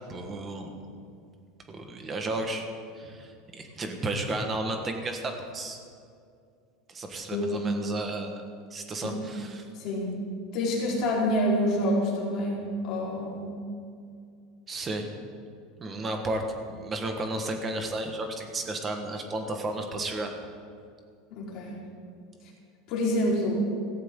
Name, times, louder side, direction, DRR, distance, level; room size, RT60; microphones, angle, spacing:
voice 1, 0.1-0.8 1.7-2.7 3.0-5.8 6.9-8.3 8.7-9.6 14.7-15.1 15.8-16.4 16.7-20.3, right 2 dB, 15° right, 4 dB, 1.4 m, -33 dB
voice 2, 9.8-10.2 10.5-13.5 21.3-21.8 22.9-23.7, left 1 dB, 40° left, -5 dB, 4.2 m, -27 dB
17.0 x 16.0 x 3.8 m, 2.3 s
supercardioid pair, 170°, 0 cm